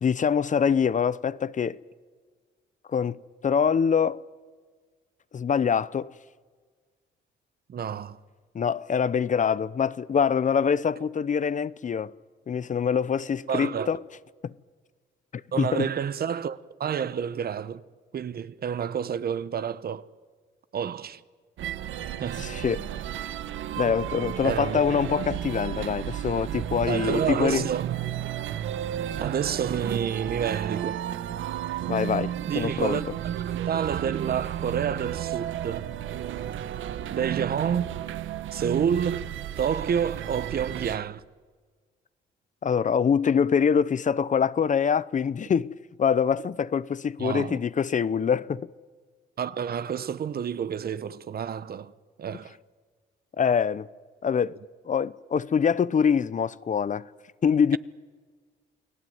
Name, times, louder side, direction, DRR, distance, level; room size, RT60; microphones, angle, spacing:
voice 1, 0.0-1.8 2.9-3.2 3.4-4.2 5.3-6.1 8.5-12.1 12.5-14.0 14.4-14.5 15.6-15.8 22.4-22.9 23.8-27.7 31.9-33.0 42.6-48.7 53.4-53.9 54.2-54.6 54.8-57.1 57.4-57.8, left 7 dB, 40° left, 0.7 m, -24 dB
voice 2, 7.7-8.2 13.5-13.9 15.5-17.8 18.1-20.0 20.7-21.2 22.2-22.5 24.4-24.8 26.9-27.9 29.2-31.1 32.5-33.1 33.4-35.9 37.1-38.0 38.5-41.2 47.2-47.6 49.4-51.9 52.2-52.5, right 8 dB, 50° right, 1.0 m, -29 dB
sound 1, 21.6-41.0, right 11 dB, 80° right, 1.1 m, -33 dB
29.0 x 18.5 x 9.4 m
cardioid pair, 90°, 20 cm